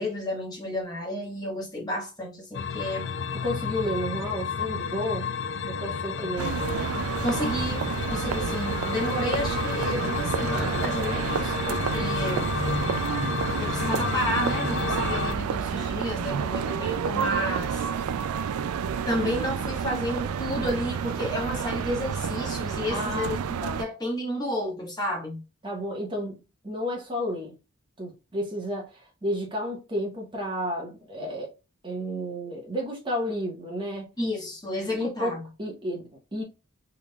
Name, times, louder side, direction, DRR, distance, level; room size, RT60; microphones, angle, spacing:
voice 1, 0.0-3.1 6.2-6.3 7.2-12.5 13.6-17.9 19.1-23.4 23.7-25.4 34.2-35.4, left 1 dB, 20° left, 1.2 m, -31 dB
sound 1, 2.5-15.4, left 5 dB, 55° left, 0.4 m, -31 dB
voice 2, 3.4-5.3 5.6-6.6 22.9-23.3 23.6-23.8 25.6-27.5 28.0-31.5 31.8-34.1 34.9-36.4, equal, 20° right, 1.2 m, -32 dB
sound 2, 6.4-23.8, right 7 dB, 80° right, 0.3 m, -30 dB
3.6 x 3.5 x 2.3 m
head